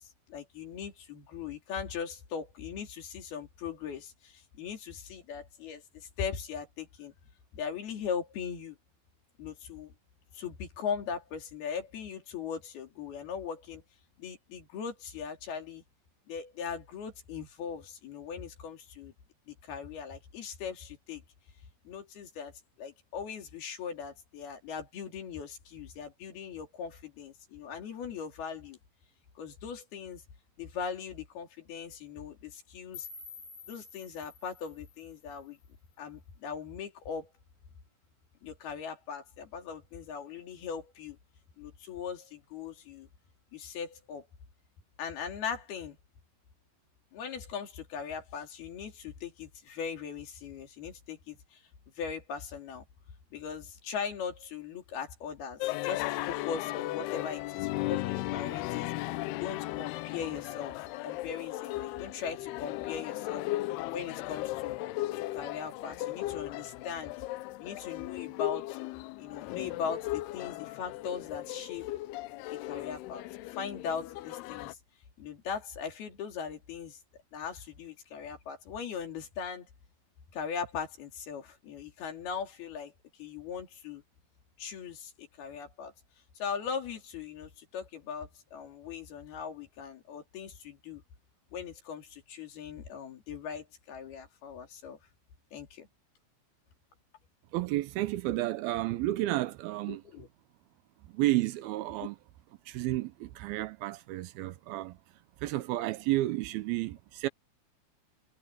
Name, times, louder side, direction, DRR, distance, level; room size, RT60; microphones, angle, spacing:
voice 1, 0.0-7.1 7.5-8.8 9.4-9.9 10.3-13.8 14.2-15.8 16.3-19.1 19.5-21.2 21.8-28.8 29.4-30.2 30.6-33.1 33.7-35.6 36.0-37.3 38.4-41.2 41.6-43.1 43.5-44.3 45.0-46.0 47.1-51.6 52.0-52.8 53.3-63.5 63.9-64.8 65.1-67.2 67.6-68.8 69.2-71.9 72.7-73.2 73.5-74.8 75.2-77.0 77.3-79.7 80.3-84.0 84.6-85.9 86.4-91.0 91.5-95.0 95.5-95.9 99.9-100.3, left 6 dB, 70° left, 5.0 m, -39 dB
sound 1, 32.9-35.9, left 6 dB, 45° left, 4.1 m, -49 dB
sound 2, 55.6-74.7, left 17 dB, 90° left, 2.7 m, -36 dB
voice 2, 97.5-100.0 101.1-102.2 102.7-105.0 105.4-107.3, right 17 dB, 80° right, 2.5 m, -31 dB
omnidirectional pair, 4.6 m